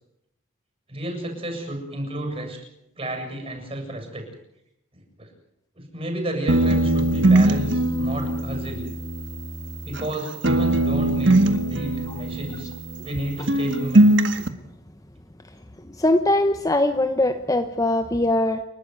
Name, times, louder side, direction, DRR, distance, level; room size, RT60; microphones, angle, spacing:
voice 1, 0.9-2.6 3.0-4.2 4.9-5.3 5.8-8.9 9.8-12.7 13.0-14.1, right 1 dB, 30° right, 3 dB, 7.6 m, -31 dB
sound 1, 6.5-10.1 10.4-13.2 13.5-14.5, right 1 dB, 60° right, 1.6 m, -21 dB
voice 2, 16.0-18.6, left 1 dB, 15° left, 9 dB, 0.9 m, -21 dB
29.5 x 12.5 x 9.6 m, 0.81 s
head